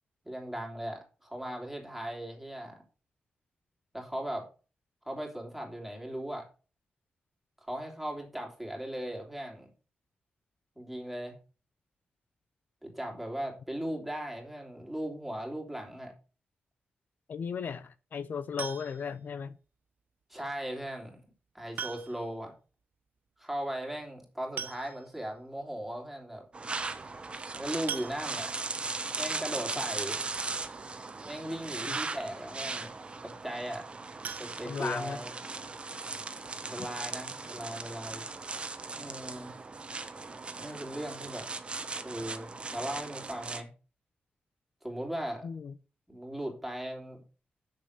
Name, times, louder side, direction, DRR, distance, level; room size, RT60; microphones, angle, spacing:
voice 1, 0.2-2.8 3.9-4.5 5.0-6.5 7.6-9.7 10.7-11.4 12.8-16.1 20.3-21.2 21.5-22.5 23.4-26.5 27.5-28.7 29.2-30.2 31.2-32.9 33.2-33.9 34.4-35.3 36.6-38.2 39.0-39.5 40.6-41.5 42.0-43.7 44.8-45.5 46.1-47.2, right 1 dB, 5° right, 3.3 m, -38 dB
voice 2, 17.3-19.6 31.9-32.0 34.7-35.2 36.8-36.9 45.4-45.7, left 6 dB, 60° left, 0.6 m, -36 dB
sound 1, 18.6-19.2 20.7-20.8 21.8-22.4 22.7-22.8 23.1-23.2 24.2-24.3 24.6-25.3 25.8-25.9 26.3-26.5 27.9-28.7 34.2-35.4 35.8-35.9 36.3-36.4 36.8-36.9, right 7 dB, 65° right, 0.7 m, -41 dB
sound 2, 26.5-43.6, right 3 dB, 30° right, 1.1 m, -38 dB
6.9 x 6.7 x 6.6 m
wide cardioid pair, 110°, 3 cm